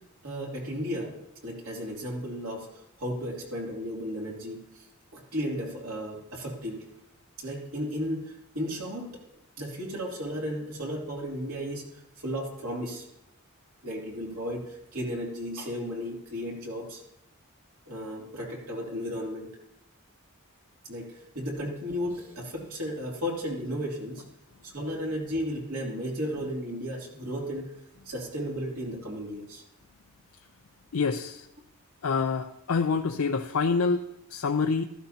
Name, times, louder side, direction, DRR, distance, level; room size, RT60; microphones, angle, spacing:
voice 1, 0.2-1.1 1.4-4.8 5.1-6.9 7.4-9.1 9.6-11.8 12.2-13.0 13.8-17.0 17.9-19.5 20.9-24.2 24.6-27.7 28.0-29.6, equal, 70° right, -2 dB, 2.9 m, -34 dB
voice 2, 30.9-31.4 32.0-34.8, left 4 dB, 70° left, 5 dB, 0.5 m, -27 dB
15.5 x 13.0 x 2.8 m, 0.80 s
head